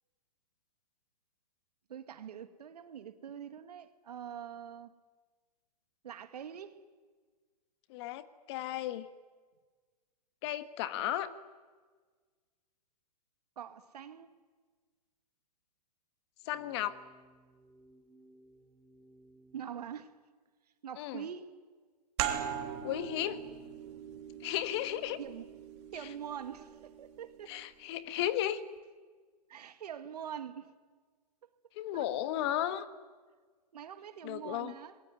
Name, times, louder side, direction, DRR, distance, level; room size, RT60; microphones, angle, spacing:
voice 1, 1.9-4.9 6.0-6.8 13.6-14.3 19.5-20.1 20.8-21.5 25.2-25.5 25.9-27.6 29.5-30.7 31.9-32.1 33.7-35.0, right 9 dB, 70° right, 2.1 m, -44 dB
voice 2, 7.9-9.1 10.4-11.3 16.4-16.9 21.0-21.2 22.8-23.4 24.4-25.2 27.5-28.6 31.8-32.8 34.2-34.7, left 12 dB, 40° left, 1.5 m, -34 dB
sound 1, 16.4-19.7, right 1 dB, 5° left, 4.8 m, -61 dB
sound 2, 22.2-27.5, right 10 dB, 45° right, 3.1 m, -40 dB
27.0 x 21.0 x 9.6 m
hypercardioid pair, 140°, 21 cm